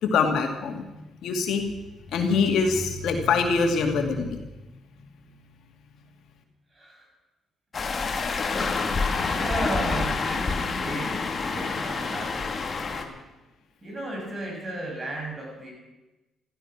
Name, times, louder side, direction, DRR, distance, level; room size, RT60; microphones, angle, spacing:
voice 1, 0.0-1.6 2.1-4.4, left 5 dB, 80° left, 4 dB, 2.4 m, -24 dB
voice 2, 6.7-7.1 7.9-8.1 8.5-13.2 13.8-15.7, right 2 dB, 30° right, 0 dB, 7.1 m, -36 dB
sound 1, 7.7-13.0, left 4 dB, 40° left, 2.1 m, -27 dB
16.0 x 14.5 x 6.0 m, 1.1 s
cardioid pair, 90°, 0 cm